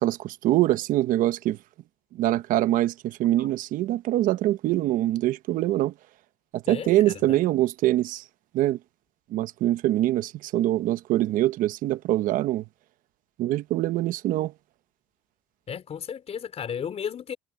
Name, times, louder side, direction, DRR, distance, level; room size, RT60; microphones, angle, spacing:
voice 1, 0.0-1.6 2.1-5.9 6.5-8.2 8.5-8.8 9.3-12.6 13.4-14.5, right 14 dB, 70° right, 1.1 m, -24 dB
voice 2, 6.7-7.4 15.7-17.4, left 8 dB, 45° left, 4.5 m, -34 dB
supercardioid pair, 85°, 14 cm